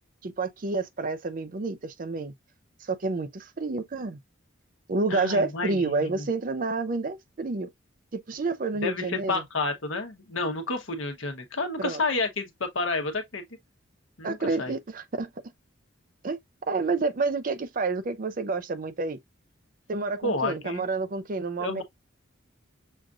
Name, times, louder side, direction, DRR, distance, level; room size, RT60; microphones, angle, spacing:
voice 1, 0.2-2.3 2.8-4.2 4.9-7.7 8.1-9.4 11.8-12.0 14.2-15.3 16.2-16.4 16.7-19.2 19.9-21.8, right 3 dB, 45° right, 0.5 m, -29 dB
voice 2, 5.1-6.3 8.8-13.4 14.2-14.7 20.2-20.9 21.6-21.8, left 3 dB, 80° left, 1.0 m, -30 dB
6.3 x 2.5 x 2.4 m
head